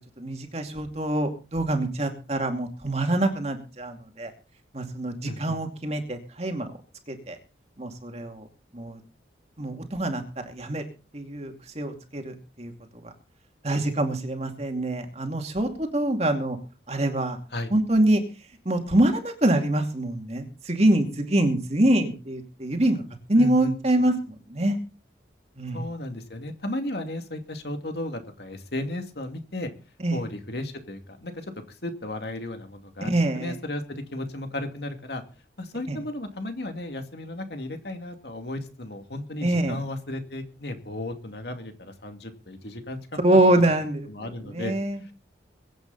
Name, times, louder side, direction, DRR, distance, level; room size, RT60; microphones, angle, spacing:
voice 1, 0.2-4.3 4.7-6.7 7.1-7.4 7.8-8.5 8.7-9.0 9.6-10.8 11.1-13.1 13.6-16.6 16.9-17.4 17.7-18.2 18.6-23.0 23.3-24.8 25.6-25.8 30.0-30.2 33.0-33.5 35.9-36.0 39.4-39.8 43.2-45.0, right 1 dB, 35° right, 4 dB, 2.5 m, -25 dB
voice 2, 5.2-5.6 17.5-17.7 23.4-23.7 25.7-29.7 30.1-31.5 31.8-35.2 35.6-43.0 44.1-44.7, left 1 dB, 60° left, 6 dB, 2.5 m, -34 dB
23.0 x 9.2 x 4.1 m, 0.34 s
head